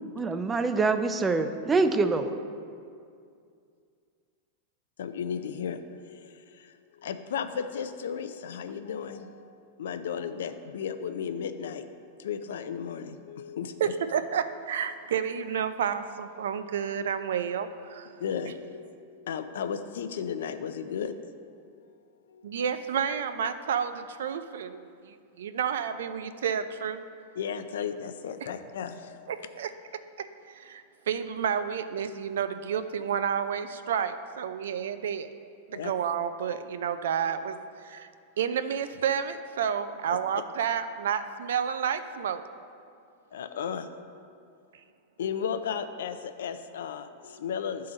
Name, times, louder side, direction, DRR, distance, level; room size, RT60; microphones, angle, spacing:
voice 1, 0.2-2.3, right 3 dB, 15° right, 9 dB, 0.4 m, -25 dB
voice 2, 5.0-5.8 6.2-6.3 7.0-9.3 9.8-11.8 12.2-13.9 18.2-18.9 19.3-21.2 22.3-22.6 27.4-29.4 35.7-35.9 43.3-43.9 45.2-47.9, left 7 dB, 85° left, 9 dB, 0.4 m, -34 dB
voice 3, 13.8-18.1 22.4-27.0 29.3-29.7 30.2-35.3 35.7-38.1 38.4-42.4, right 8 dB, 85° right, 10 dB, 0.4 m, -30 dB
10.5 x 3.8 x 3.9 m, 2.3 s
supercardioid pair, 140°, 0 cm